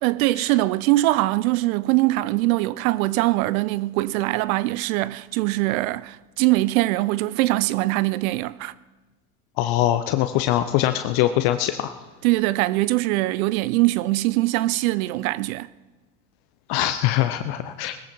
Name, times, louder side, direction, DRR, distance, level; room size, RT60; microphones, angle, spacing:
voice 1, 0.0-8.7 12.2-15.7, right 18 dB, 60° right, 0.7 m, -22 dB
voice 2, 9.6-11.9 16.7-18.0, left 13 dB, 50° left, 0.9 m, -22 dB
20.5 x 14.5 x 4.4 m
hypercardioid pair, 85°, 46 cm